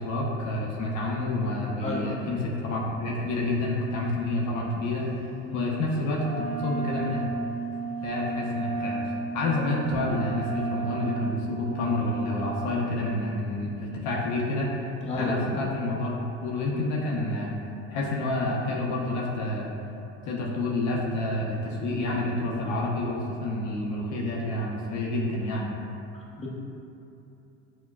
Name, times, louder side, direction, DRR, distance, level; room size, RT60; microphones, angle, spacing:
voice 1, 0.0-5.1 5.5-7.2 8.0-9.0 9.3-14.7 15.1-16.1 16.4-17.6 17.9-19.7 20.2-25.7, left 2 dB, 60° left, -2 dB, 0.6 m, -29 dB
voice 2, 1.8-2.1 5.4-5.6 15.0-15.5 26.4-26.5, left 3 dB, 20° left, -4 dB, 0.7 m, -31 dB
Wind instrument woodwind instrument, 6.2-13.0, right 3 dB, 35° right, 0.9 m, -33 dB
5.6 x 2.2 x 2.3 m, 2.9 s
hypercardioid pair, 80°, 33 cm